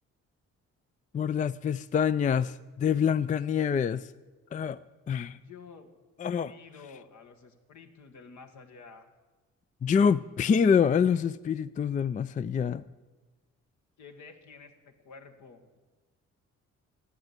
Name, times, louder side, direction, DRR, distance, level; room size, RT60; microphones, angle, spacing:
voice 1, 1.1-4.1 4.5-4.8 5.1-5.4 6.2-6.5 9.8-12.8, left 7 dB, 25° left, 15 dB, 0.4 m, -26 dB
voice 2, 5.3-5.9 6.4-9.1 14.0-15.8, left 5 dB, 70° left, 5 dB, 1.7 m, -50 dB
14.0 x 8.8 x 8.1 m, 1.2 s
cardioid pair, 90°, 30 cm